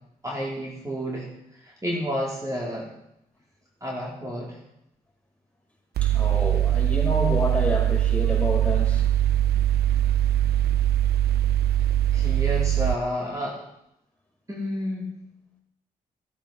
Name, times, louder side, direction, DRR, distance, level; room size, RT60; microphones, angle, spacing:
voice 1, 0.2-2.9 3.8-4.6 12.1-13.6 14.5-15.2, equal, 20° right, -4 dB, 4.1 m, -30 dB
voice 2, 6.0-9.1, left 1 dB, 5° left, -2 dB, 6.2 m, -29 dB
Mechanical fan, 6.0-12.9, right 11 dB, 70° right, 0.5 m, -22 dB
16.0 x 8.7 x 6.0 m, 0.79 s
supercardioid pair, 50°, 17 cm